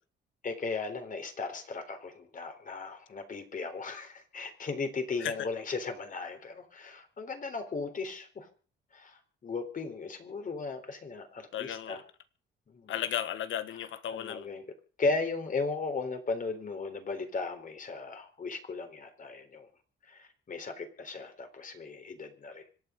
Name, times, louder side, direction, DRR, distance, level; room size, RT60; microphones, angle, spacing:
voice 1, 0.4-8.5 8.9-12.0 12.7-13.0 14.1-14.6 15.0-19.7 20.1-22.6, left 3 dB, 40° left, 3.9 m, -36 dB
voice 2, 11.5-12.0 12.9-14.5, left 10 dB, 75° left, 1.6 m, -34 dB
25.5 x 9.1 x 5.2 m
cardioid pair, 90°, 20 cm